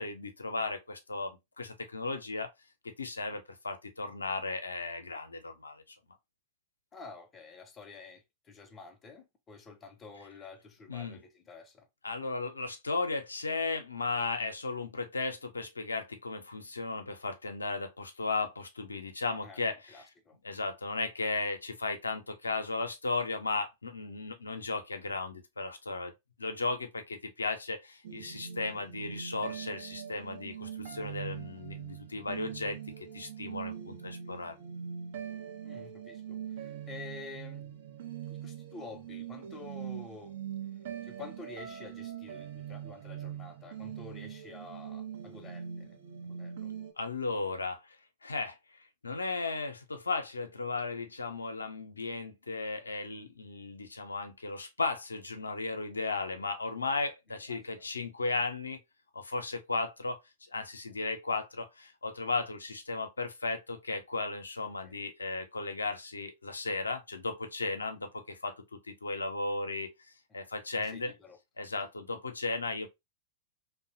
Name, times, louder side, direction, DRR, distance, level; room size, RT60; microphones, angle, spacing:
voice 1, 0.0-2.5 2.8-5.8 10.9-11.2 12.0-19.8 20.4-26.1 26.4-34.6 47.0-48.0 48.2-48.6 49.0-58.8 59.1-60.2 60.5-69.9 70.3-71.1 71.6-72.9, left 3 dB, 80° left, 0.5 m, -35 dB
voice 2, 6.9-11.9 19.4-20.4 35.6-37.8 38.3-40.4 41.0-46.0 46.2-46.7 57.5-57.8 64.8-65.0 70.3-70.4 70.7-71.4, left 4 dB, 20° left, 0.6 m, -49 dB
sound 1, 28.0-46.9, right 8 dB, 55° right, 0.5 m, -42 dB
2.6 x 2.1 x 2.5 m
figure-of-eight pair, 100°, 0 cm